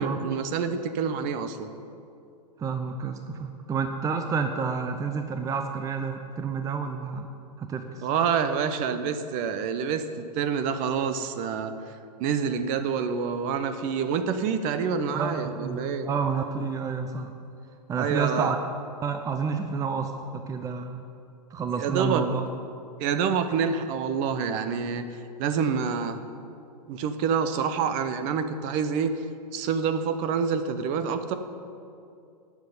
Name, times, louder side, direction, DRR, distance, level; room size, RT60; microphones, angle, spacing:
voice 1, 0.0-1.7 8.0-11.8 12.2-16.1 18.0-18.5 21.8-22.3 23.0-25.0 25.4-26.2 26.9-29.2 29.5-31.3, right 6 dB, 40° right, 10 dB, 0.9 m, -27 dB
voice 2, 2.6-8.1 15.1-17.3 17.9-18.6 19.0-21.0 21.5-22.4, right 5 dB, 15° right, 6 dB, 0.7 m, -30 dB
10.5 x 7.4 x 9.5 m, 2.5 s
hypercardioid pair, 115°, 21 cm